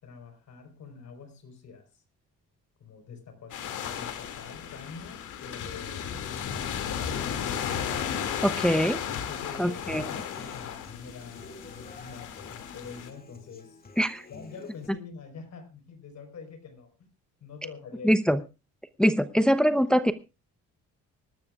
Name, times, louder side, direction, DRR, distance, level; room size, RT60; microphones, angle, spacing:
voice 1, 0.0-1.8 2.8-3.6 3.8-7.4 9.1-13.8 14.3-17.1 17.4-18.1, left 5 dB, 65° left, 6 dB, 4.5 m, -45 dB
sound 1, 3.5-13.1, left 8 dB, 85° left, 2.4 m, -34 dB
Human voice / Acoustic guitar, 6.9-14.9, left 3 dB, 30° left, 2.3 m, -49 dB
voice 2, 8.4-9.0 9.6-10.0 14.0-14.2 18.0-18.4 19.0-20.1, equal, 5° left, 11 dB, 0.8 m, -23 dB
24.5 x 12.5 x 2.4 m, 0.30 s
cardioid pair, 90°, 30 cm